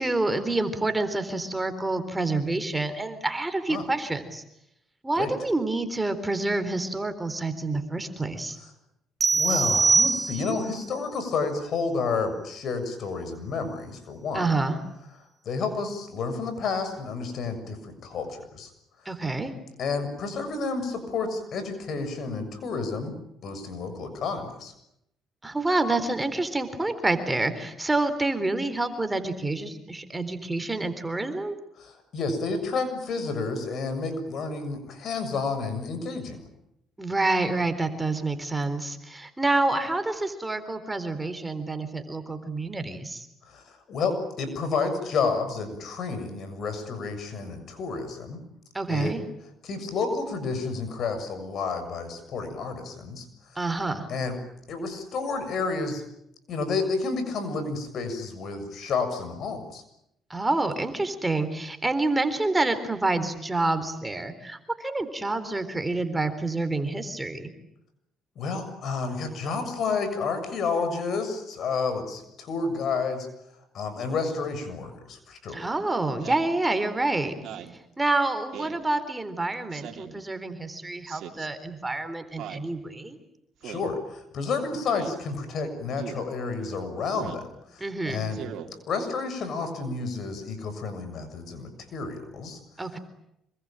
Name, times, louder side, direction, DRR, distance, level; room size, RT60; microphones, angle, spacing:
voice 1, 0.0-4.4 5.0-8.6 14.3-14.8 19.1-19.5 25.4-31.6 37.0-43.3 48.7-49.2 53.6-54.1 60.3-67.5 75.5-77.3 78.0-83.2 87.8-88.3 92.8-93.0, right 2 dB, 15° right, 9 dB, 4.0 m, -28 dB
sound 1, 9.2-10.7, right 4 dB, 35° right, 1.4 m, -22 dB
voice 2, 9.3-14.6 15.5-18.7 19.0-19.1 19.8-24.7 31.8-36.5 43.4-48.4 48.9-49.2 49.6-53.6 54.1-54.4 54.7-56.0 56.5-59.8 68.4-73.3 73.7-75.7 83.6-88.5 88.9-92.6, left 4 dB, 60° left, 9 dB, 7.0 m, -30 dB
Speech synthesizer, 76.2-76.5 77.3-77.8 78.5-78.8 79.7-80.2 81.1-81.5 82.4-82.7 83.6-83.9 84.9-85.1 86.0-86.2 87.1-87.5 88.3-88.7, right 10 dB, 70° right, 3.1 m, -40 dB
26.5 x 23.5 x 9.1 m, 0.81 s
supercardioid pair, 75°, 0 cm